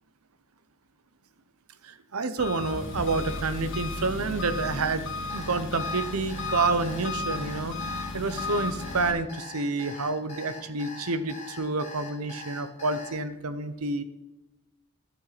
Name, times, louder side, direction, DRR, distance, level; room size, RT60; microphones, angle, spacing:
voice 1, 1.8-7.7 8.1-14.0, right 3 dB, 85° right, 12 dB, 0.8 m, -29 dB
Engine, 2.4-9.1, left 2 dB, 60° left, 1.7 m, -34 dB
Alarm, 5.3-13.1, left 3 dB, 30° left, 2.4 m, -42 dB
11.0 x 8.5 x 4.1 m, 1.0 s
head